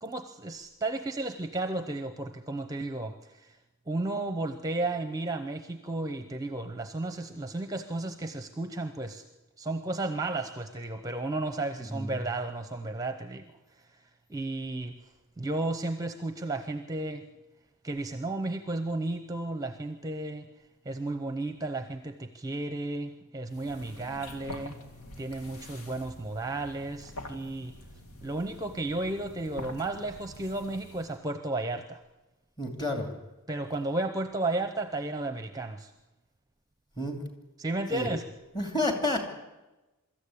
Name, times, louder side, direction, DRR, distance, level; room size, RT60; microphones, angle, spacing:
voice 1, 0.0-3.6 3.9-9.2 9.6-13.5 13.8-13.9 14.3-14.9 15.4-17.2 17.8-20.5 20.8-24.8 25.2-27.7 28.2-32.0 33.5-35.9 37.6-38.2, right 2 dB, 15° right, 8 dB, 0.7 m, -33 dB
sound 1, 23.5-31.2, left 1 dB, 85° left, 2.2 m, -46 dB
voice 2, 32.6-33.1 37.0-37.2 37.9-38.1 38.5-39.3, left 1 dB, 20° left, 4 dB, 2.7 m, -30 dB
23.5 x 13.5 x 8.6 m, 1.1 s
head